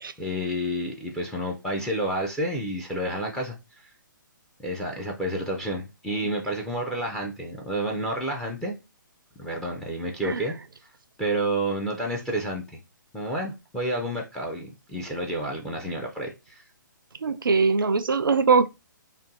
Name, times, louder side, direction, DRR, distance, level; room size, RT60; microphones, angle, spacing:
voice 1, 0.2-3.9 4.6-8.8 9.4-10.6 11.2-12.8 13.1-16.6, right 1 dB, 5° left, 0.5 m, -30 dB
voice 2, 17.2-18.7, right 5 dB, 85° right, 0.4 m, -21 dB
2.6 x 2.2 x 3.8 m
figure-of-eight pair, 140°, 11 cm